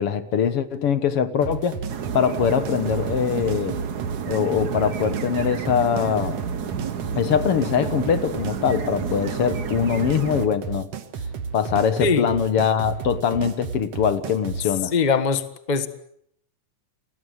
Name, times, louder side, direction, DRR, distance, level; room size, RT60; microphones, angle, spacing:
voice 1, 0.0-1.8 2.1-3.8 4.3-6.4 7.2-10.9 11.5-14.9, left 7 dB, 55° left, 1.9 m, -22 dB
sound 1, 1.4-14.7, right 5 dB, 55° right, 2.4 m, -33 dB
sound 2, 1.9-10.5, right 7 dB, 85° right, 0.8 m, -31 dB
voice 2, 14.9-15.9, left 5 dB, 75° left, 0.4 m, -21 dB
30.0 x 22.0 x 8.1 m
omnidirectional pair, 3.8 m